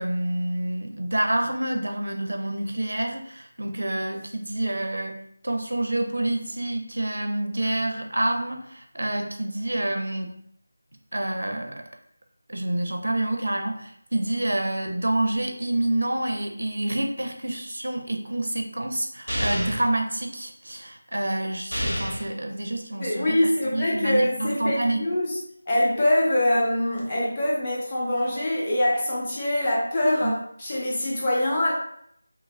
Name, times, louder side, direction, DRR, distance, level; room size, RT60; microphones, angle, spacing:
voice 1, 0.0-10.4 11.1-11.8 12.5-25.0 30.2-30.3, right 1 dB, 70° right, 4 dB, 0.4 m, -28 dB
sound 1, 19.3-19.9 21.7-22.3, equal, 90° left, 1.4 m, -28 dB
voice 2, 23.0-25.4 25.7-31.7, left 1 dB, 25° left, -5 dB, 0.7 m, -24 dB
2.9 x 2.4 x 2.2 m, 0.69 s
figure-of-eight pair, 165°, 0 cm